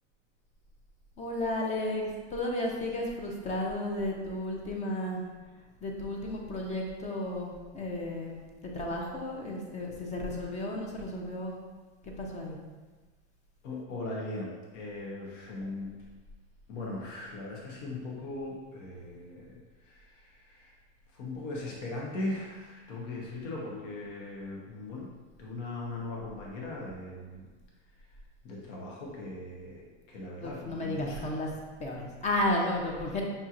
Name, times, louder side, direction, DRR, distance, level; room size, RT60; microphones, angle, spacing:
voice 1, 1.2-5.2 5.8-11.5 12.0-12.6 30.4-31.5 31.8-33.2, left 1 dB, 20° left, 0 dB, 0.5 m, -33 dB
voice 2, 13.6-15.9 16.7-20.7 21.1-25.1 25.4-27.4 28.4-31.3, left 2 dB, 80° left, -3 dB, 1.0 m, -39 dB
5.3 x 2.8 x 2.4 m, 1.3 s
supercardioid pair, 135°, 37 cm